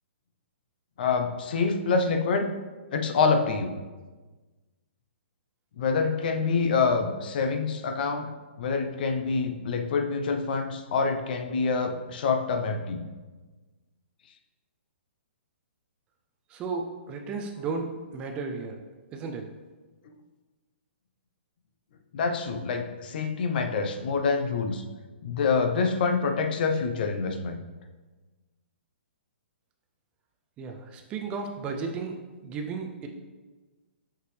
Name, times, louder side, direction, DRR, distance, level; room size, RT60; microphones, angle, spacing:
voice 1, 1.0-2.5 2.9-3.7 5.8-8.3 8.6-13.0 22.1-24.8 25.2-27.6, left 4 dB, 50° left, 6 dB, 0.6 m, -26 dB
voice 2, 16.5-17.9 18.1-18.8 19.1-19.4 30.6-32.1 32.4-33.1, right 4 dB, 15° right, 4 dB, 0.3 m, -34 dB
6.0 x 5.5 x 3.2 m, 1.3 s
hypercardioid pair, 165°, 7 cm